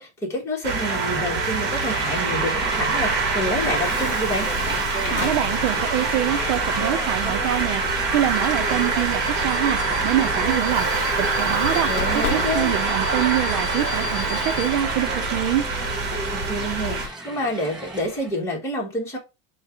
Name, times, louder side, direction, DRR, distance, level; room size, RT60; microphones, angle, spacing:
voice 1, 0.0-4.5 11.8-12.7 16.3-19.2, equal, 10° left, 1.4 m, -28 dB
sound 1, 0.6-17.1, right 4 dB, 35° right, 1.4 m, -25 dB
Crowd, 1.7-18.4, right 1 dB, 15° right, 0.9 m, -35 dB
Bus / Alarm, 2.5-17.1, left 12 dB, 90° left, 0.6 m, -34 dB
voice 2, 5.1-11.9 12.1-15.6, right 12 dB, 65° right, 0.8 m, -25 dB
4.5 x 2.4 x 4.8 m
supercardioid pair, 165°, 32 cm